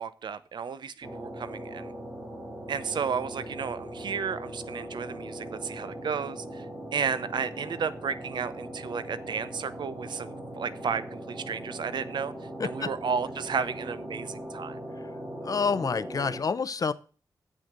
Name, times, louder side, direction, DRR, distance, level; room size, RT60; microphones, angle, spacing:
voice 1, 0.0-1.9 2.7-6.7 6.9-12.3 12.6-14.8, right 6 dB, 80° right, 15 dB, 0.7 m, -33 dB
sound 1, 1.0-16.4, right 1 dB, 35° right, 3.8 m, -40 dB
voice 2, 15.4-16.9, left 5 dB, 50° left, 15 dB, 0.7 m, -28 dB
7.8 x 6.2 x 6.5 m, 0.38 s
wide cardioid pair, 100°, 8 cm